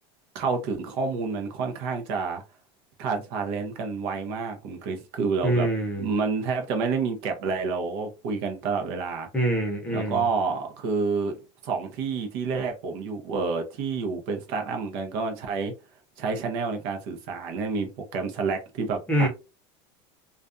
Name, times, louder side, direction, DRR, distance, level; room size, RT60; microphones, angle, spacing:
voice 1, 0.3-2.4 3.0-5.7 6.0-9.3 9.9-11.3 11.6-15.7 16.2-19.3, right 4 dB, 60° right, 0.7 m, -29 dB
voice 2, 5.4-6.1 9.3-10.2 19.1-19.3, right 1 dB, 10° left, 0.8 m, -25 dB
2.4 x 2.2 x 2.5 m
supercardioid pair, 145°, 13 cm